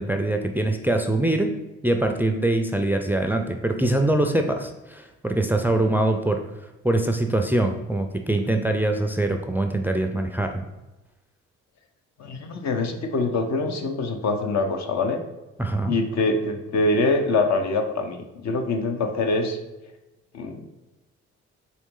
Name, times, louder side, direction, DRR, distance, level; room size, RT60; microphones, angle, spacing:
voice 1, 0.0-1.5 1.8-6.4 6.8-10.6 15.6-15.9, right 1 dB, 5° right, 5 dB, 0.4 m, -23 dB
voice 2, 12.2-15.2 15.9-19.6 20.3-20.6, left 3 dB, 60° left, 4 dB, 0.7 m, -24 dB
4.1 x 3.0 x 3.7 m, 1.0 s
hypercardioid pair, 50°, 31 cm